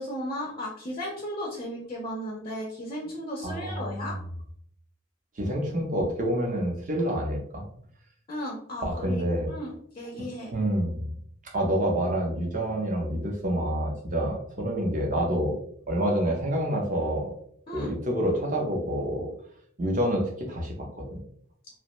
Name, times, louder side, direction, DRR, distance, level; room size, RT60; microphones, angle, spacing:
voice 1, 0.0-4.2 8.3-9.2 9.5-10.5 17.7-17.9, equal, 30° left, -1 dB, 0.4 m, -35 dB
voice 2, 3.4-4.1 5.4-7.7 8.9-9.5 10.5-11.1 11.5-15.6 15.9-17.3 17.7-19.3 19.8-21.2, equal, 40° right, 0 dB, 0.6 m, -27 dB
2.5 x 2.1 x 2.9 m, 0.65 s
head